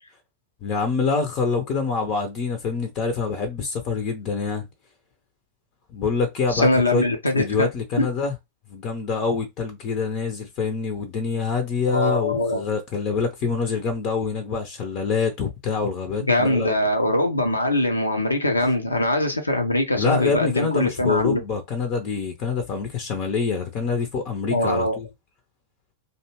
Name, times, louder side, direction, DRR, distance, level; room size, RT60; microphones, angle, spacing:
voice 1, 0.6-4.7 5.9-7.0 7.3-8.3 8.7-16.7 20.0-25.1, left 5 dB, 40° left, 0.6 m, -26 dB
voice 2, 6.5-7.7 8.0-8.1 11.9-12.6 16.3-21.4 24.5-25.0, left 1 dB, 80° left, 0.6 m, -22 dB
2.7 x 2.2 x 2.8 m
figure-of-eight pair, 90°, 0 cm